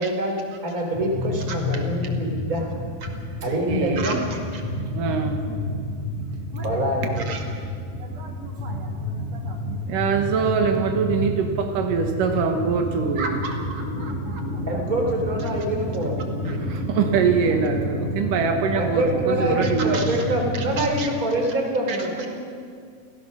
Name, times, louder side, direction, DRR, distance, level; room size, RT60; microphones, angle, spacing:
voice 1, 0.0-0.4 0.6-2.7 3.4-4.1 6.6-7.3 14.7-16.2 18.8-22.3, right 1 dB, 25° right, 1 dB, 3.7 m, -25 dB
sound 1, 0.9-20.8, left 1 dB, 65° left, 6.3 m, -30 dB
voice 2, 1.5-1.8 3.0-3.1 4.0-4.6 5.5-5.6 6.5-6.9 7.1-7.5 8.0-9.8 13.1-15.1 15.4-15.5 16.4-16.6 19.6-21.1 21.4-21.5 21.9-22.1, right 3 dB, 55° right, 2 dB, 3.3 m, -36 dB
voice 3, 3.4-4.2 4.9-5.5 9.9-13.3 16.7-20.1, right 6 dB, 85° right, 4 dB, 3.1 m, -23 dB
28.5 x 17.0 x 6.4 m, 2.2 s
omnidirectional pair, 3.7 m